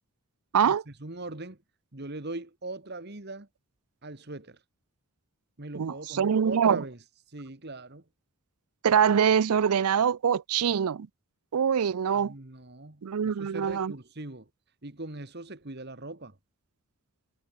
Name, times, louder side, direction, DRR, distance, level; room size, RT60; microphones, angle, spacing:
voice 1, 0.6-1.6 1.9-3.5 4.0-4.6 5.6-7.0 7.3-8.0 12.2-14.5 14.8-16.4, right 2 dB, 45° right, 1.8 m, -40 dB
voice 2, 5.7-6.8 8.8-11.1 11.5-12.3 13.0-13.9, right 7 dB, 85° right, 0.5 m, -24 dB
head